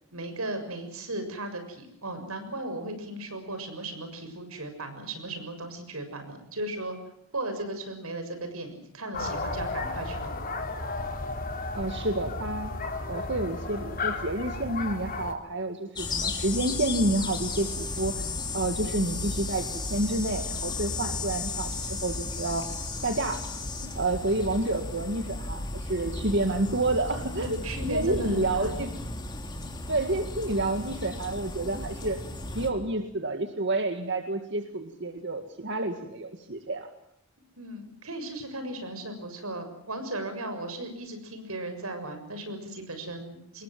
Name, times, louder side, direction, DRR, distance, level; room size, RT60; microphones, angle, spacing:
voice 1, 0.1-7.0 7.3-10.4 27.2-28.7 37.6-43.6, right 1 dB, 90° right, 8 dB, 6.8 m, -36 dB
sound 1, 9.1-15.3, left 3 dB, 40° left, 3.3 m, -33 dB
voice 2, 11.7-12.7 13.1-18.2 18.5-22.7 23.0-23.4 23.8-27.6 27.9-28.9 29.9-32.2 32.5-36.9, right 2 dB, 55° right, 6 dB, 2.0 m, -29 dB
sound 2, 15.9-32.7, left 3 dB, 20° left, 3.4 m, -34 dB
27.0 x 21.5 x 7.5 m, 0.78 s
head